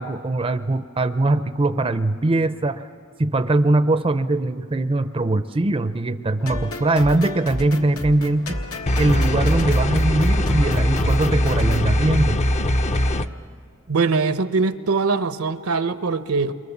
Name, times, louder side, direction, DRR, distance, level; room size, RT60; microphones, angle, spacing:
voice 1, 0.0-2.8 3.2-8.6 9.0-12.4, right 2 dB, 25° right, 10 dB, 0.5 m, -21 dB
sound 1, 6.4-11.8, left 1 dB, 80° left, 1.8 m, -31 dB
sound 2, 8.9-13.3, left 1 dB, 30° left, 0.6 m, -21 dB
voice 2, 13.9-16.5, right 4 dB, 75° right, 11 dB, 0.9 m, -22 dB
29.0 x 23.5 x 7.2 m, 2.2 s
head